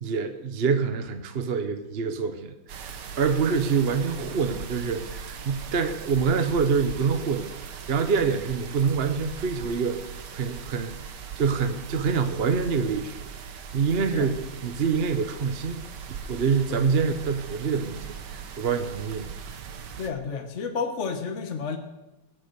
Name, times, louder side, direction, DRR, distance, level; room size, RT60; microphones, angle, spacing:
voice 1, 0.0-10.9 11.4-13.2 13.7-15.8 16.3-18.1 18.6-19.6, right 5 dB, 45° right, 8 dB, 0.8 m, -26 dB
sound 1, 2.7-20.1, right 7 dB, 60° right, 1.6 m, -40 dB
voice 2, 20.0-21.8, left 5 dB, 40° left, 5 dB, 1.3 m, -31 dB
21.0 x 8.3 x 6.8 m, 0.99 s
omnidirectional pair, 2.2 m